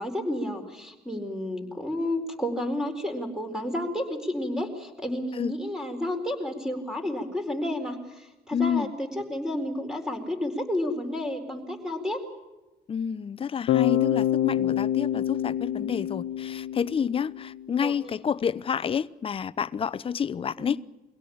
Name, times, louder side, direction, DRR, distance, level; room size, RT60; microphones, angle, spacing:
voice 1, 0.0-12.2 17.8-18.0 20.6-20.7, left 1 dB, 5° right, 4.4 m, -31 dB
voice 2, 8.5-8.9 12.9-20.8, left 7 dB, 35° left, 0.7 m, -29 dB
Bass guitar, 13.7-17.6, left 11 dB, 75° left, 1.2 m, -26 dB
24.0 x 17.0 x 8.8 m
cardioid pair, 110°, 17 cm